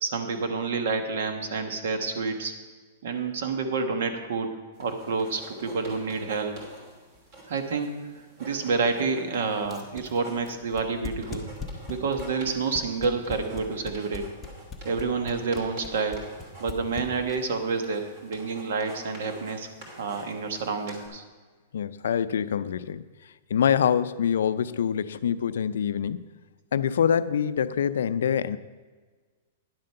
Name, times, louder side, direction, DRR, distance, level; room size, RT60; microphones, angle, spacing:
voice 1, 0.0-2.5 3.0-6.6 7.5-7.9 8.4-11.5 11.9-14.3 14.8-16.2 16.6-19.7 20.0-21.2, right 4 dB, 60° right, 7 dB, 1.2 m, -29 dB
sound 1, 4.7-21.1, right 1 dB, 35° right, 2.8 m, -47 dB
sound 2, 9.6-17.6, left 5 dB, 10° left, 0.7 m, -39 dB
voice 2, 21.7-23.0 23.5-26.3 26.7-28.6, left 8 dB, 80° left, 15 dB, 0.4 m, -25 dB
10.5 x 7.7 x 5.5 m, 1.4 s
supercardioid pair, 175°, 0 cm